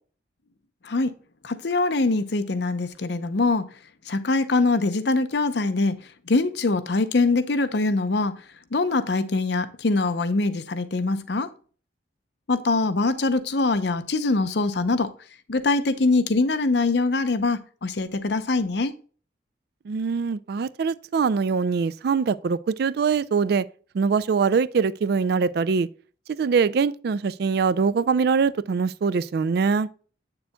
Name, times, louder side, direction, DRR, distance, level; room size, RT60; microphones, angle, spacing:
voice 1, 0.8-1.2 1.4-3.7 4.1-6.0 6.3-8.4 8.7-11.5 12.5-15.1 15.5-19.0, left 3 dB, 65° left, 0.6 m, -23 dB
voice 2, 19.9-23.6 23.9-25.9 26.4-29.9, right 5 dB, 60° right, 0.3 m, -23 dB
8.0 x 6.8 x 2.2 m
head